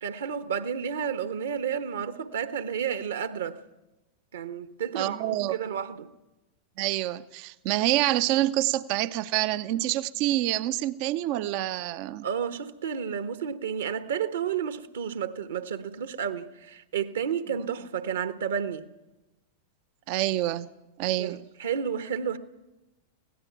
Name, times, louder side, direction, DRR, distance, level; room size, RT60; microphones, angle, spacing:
voice 1, 0.0-3.6 4.3-6.1 12.2-18.9 21.2-22.4, right 7 dB, 65° right, 1.3 m, -31 dB
voice 2, 4.9-5.6 6.8-12.3 20.1-20.7 21.0-21.5, right 15 dB, 45° right, 0.6 m, -27 dB
24.5 x 17.5 x 6.0 m
figure-of-eight pair, 90°, 0 cm